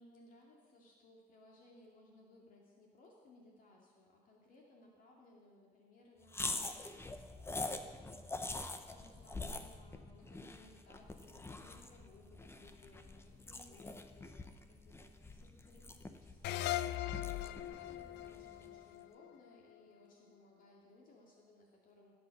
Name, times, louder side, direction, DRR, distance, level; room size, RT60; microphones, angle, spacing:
voice 1, 0.0-8.5 8.9-22.1, left 2 dB, 55° left, -1 dB, 2.3 m, -63 dB
sound 1, 6.3-18.8, left 2 dB, 15° left, 0.8 m, -45 dB
sound 2, 16.4-19.7, left 14 dB, 80° left, 0.5 m, -40 dB
16.5 x 8.0 x 5.8 m, 1.5 s
cardioid pair, 110°, 17 cm